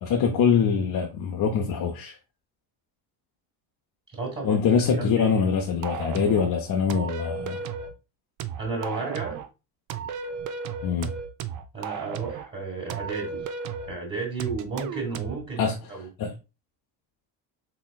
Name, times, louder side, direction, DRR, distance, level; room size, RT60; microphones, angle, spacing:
voice 1, 0.0-2.2 4.4-7.6 10.8-11.1 15.6-15.8 16.2-16.3, left 6 dB, 50° left, 0.7 m, -24 dB
voice 2, 4.1-5.4 8.6-9.4 11.7-13.5 13.9-15.6 15.9-16.1, right 3 dB, 25° right, 1.5 m, -33 dB
sound 1, 5.8-6.5 6.9-7.9 8.4-9.5 9.9-12.5 12.9-13.9 14.4-15.4, right 6 dB, 45° right, 0.5 m, -34 dB
4.1 x 3.0 x 2.2 m
supercardioid pair, 95°, 44 cm